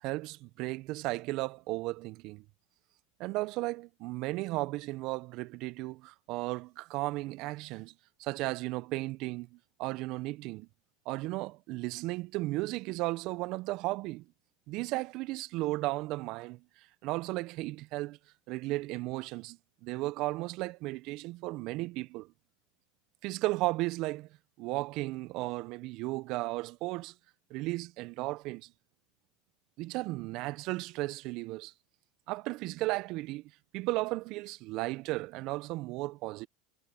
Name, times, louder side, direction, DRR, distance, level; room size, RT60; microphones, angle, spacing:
voice 1, 0.0-2.4 3.2-7.9 8.2-10.7 11.0-14.2 14.7-18.2 18.5-22.3 23.2-24.3 24.6-27.1 27.5-28.7 29.8-31.7 32.3-36.5, right 20 dB, 55° right, 1.3 m, -35 dB
hypercardioid pair, 85°, 0 cm